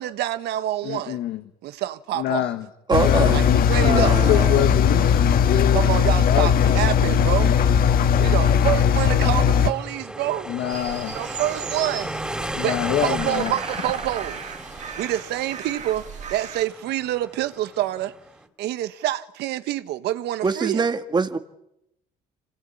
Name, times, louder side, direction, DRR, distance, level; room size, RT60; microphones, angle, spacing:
voice 1, 0.0-1.2 1.6-2.5 3.3-4.2 5.7-7.6 8.2-10.5 11.1-12.1 12.6-14.4 15.0-18.2 18.6-20.9, right 13 dB, 80° right, 1.4 m, -27 dB
voice 2, 0.8-1.4 2.1-7.5 10.5-11.2 12.5-13.5, left 12 dB, 80° left, 1.6 m, -26 dB
Engine, 2.9-9.7, left 7 dB, 60° left, 1.5 m, -18 dB
voice 3, 2.9-3.5 3.8-4.7 20.4-21.4, right 4 dB, 25° right, 1.9 m, -23 dB
sound 1, 3.4-18.4, right 1 dB, 5° right, 3.9 m, -37 dB
sound 2, 10.7-16.6, right 6 dB, 45° right, 3.2 m, -36 dB
26.5 x 24.5 x 8.6 m
cardioid pair, 110°, 17 cm